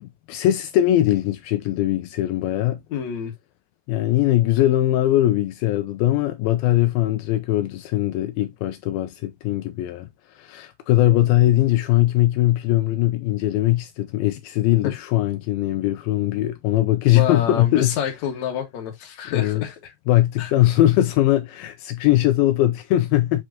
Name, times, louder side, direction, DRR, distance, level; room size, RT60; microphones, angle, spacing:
voice 1, 0.0-2.8 3.9-18.2 19.3-19.6 20.1-23.4, left 14 dB, 85° left, 2.3 m, -20 dB
voice 2, 2.9-3.3 14.8-14.9 17.1-19.8 20.4-20.5, left 8 dB, 55° left, 2.5 m, -27 dB
7.5 x 4.8 x 2.8 m
omnidirectional pair, 4.4 m